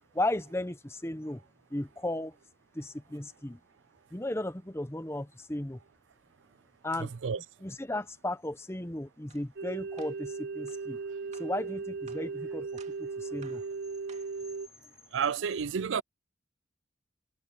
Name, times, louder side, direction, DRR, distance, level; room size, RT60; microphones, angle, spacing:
voice 1, 0.1-1.4 1.7-2.4 2.7-3.6 4.1-5.8 6.8-7.1 7.6-11.0 11.4-13.6, left 1 dB, 15° left, 0.9 m, -35 dB
voice 2, 7.0-7.4 15.1-16.0, right 6 dB, 85° right, 0.5 m, -30 dB
sound 1, 9.3-9.5 10.0-10.2 10.7-10.8 11.3-11.6 12.1-12.3 12.8-13.0 13.4-13.7 14.1-14.4, right 6 dB, 35° right, 2.2 m, -56 dB
sound 2, 9.6-14.7, right 4 dB, 55° right, 1.0 m, -37 dB
head